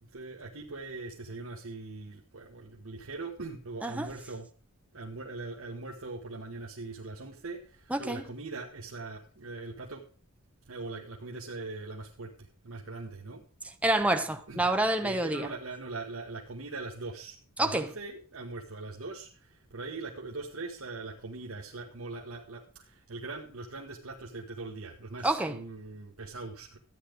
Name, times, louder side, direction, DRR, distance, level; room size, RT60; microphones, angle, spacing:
voice 1, 0.0-4.5 4.9-10.0 10.6-13.4 14.5-14.6 15.0-26.8, right 3 dB, 70° right, 1.3 m, -41 dB
voice 2, 7.9-8.2 13.6-15.5 17.6-17.9 25.2-25.6, right 1 dB, 5° right, 0.9 m, -28 dB
12.5 x 9.3 x 5.0 m
head